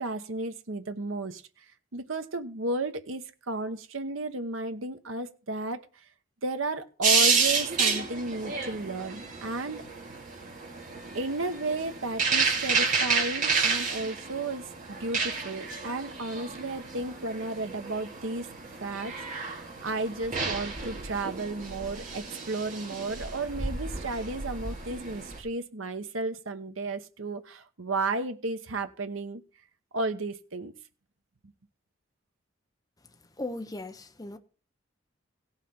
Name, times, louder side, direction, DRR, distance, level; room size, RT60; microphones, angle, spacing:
voice 1, 0.0-1.4 1.9-6.0 6.4-9.9 11.1-18.5 18.8-29.4 29.9-30.7 31.4-31.5, right 2 dB, 80° right, 1.0 m, -33 dB
sound 1, 7.0-25.4, right 5 dB, 40° right, 2.3 m, -30 dB
voice 2, 33.4-34.4, left 2 dB, 20° left, 0.8 m, -37 dB
17.0 x 5.8 x 4.3 m
head